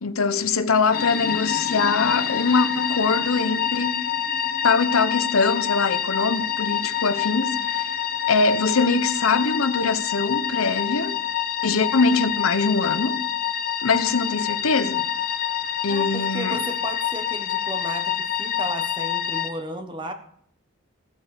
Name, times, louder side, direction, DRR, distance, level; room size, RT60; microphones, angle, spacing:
voice 1, 0.0-4.1 4.6-7.9 8.3-11.2 11.6-13.2 13.8-15.0 15.8-16.6, left 4 dB, 85° left, 0.9 m, -22 dB
sound 1, 0.9-19.5, left 9 dB, 40° left, 1.0 m, -27 dB
voice 2, 15.9-20.1, right 1 dB, 20° right, 1.3 m, -34 dB
16.0 x 7.9 x 6.5 m
head